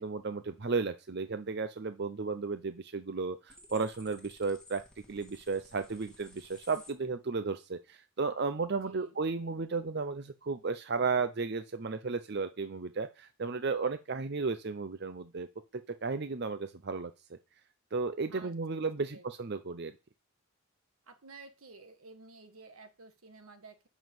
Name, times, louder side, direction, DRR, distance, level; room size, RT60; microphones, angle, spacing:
voice 1, 0.0-4.8 5.1-15.5 15.7-17.4 17.9-19.9, right 4 dB, 50° right, 10 dB, 0.6 m, -34 dB
sound 1, 3.5-6.9, left 2 dB, 5° left, 2.3 m, -56 dB
voice 2, 8.8-9.2 18.3-19.2 21.0-23.9, right 3 dB, 80° right, 8 dB, 1.6 m, -53 dB
7.3 x 6.3 x 7.7 m, 0.29 s
head